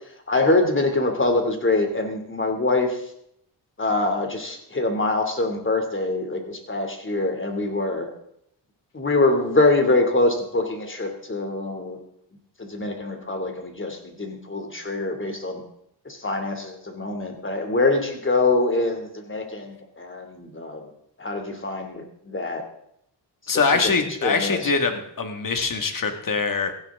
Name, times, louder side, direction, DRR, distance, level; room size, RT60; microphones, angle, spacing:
voice 1, 0.3-3.0 3.8-8.1 8.9-12.0 12.6-15.6 16.0-20.9 21.2-22.6 23.5-23.9 24.2-24.7, left 2 dB, 25° left, 5 dB, 2.8 m, -24 dB
voice 2, 23.5-26.7, left 4 dB, 45° left, 6 dB, 2.0 m, -23 dB
16.5 x 15.0 x 3.7 m, 0.72 s
cardioid pair, 100°, 44 cm